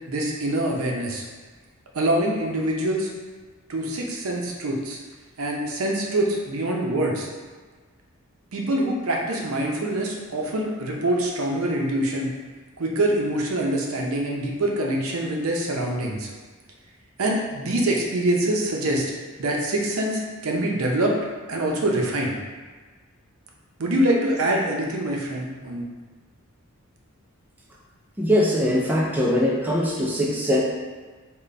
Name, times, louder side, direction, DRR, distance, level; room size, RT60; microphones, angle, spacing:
voice 1, 0.1-1.2 1.9-3.1 3.7-5.0 5.4-7.3 8.5-12.3 12.8-16.3 17.2-19.1 19.4-21.2 21.5-22.3 23.8-25.9, right 1 dB, 75° right, -1 dB, 0.6 m, -25 dB
voice 2, 28.2-30.6, left 1 dB, 10° right, -4 dB, 0.4 m, -21 dB
3.9 x 2.2 x 3.3 m, 1.4 s
head